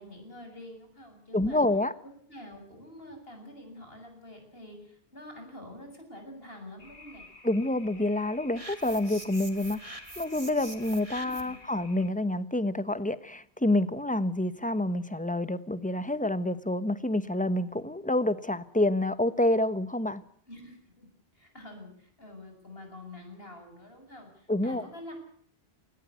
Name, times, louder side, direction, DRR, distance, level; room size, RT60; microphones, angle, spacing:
voice 1, 0.0-1.6 2.0-7.3 11.1-11.6 20.5-21.1 21.3-25.1, left 1 dB, 70° left, 5 dB, 7.9 m, -47 dB
voice 2, 1.3-1.9 7.4-20.2 24.5-24.8, left 1 dB, 10° left, 14 dB, 1.2 m, -28 dB
sound 1, 6.8-12.1, left 3 dB, 55° left, 2.3 m, -52 dB
sound 2, 8.6-11.6, right 2 dB, 35° right, 2.6 m, -45 dB
20.0 x 19.0 x 9.5 m, 0.62 s
omnidirectional pair, 1.0 m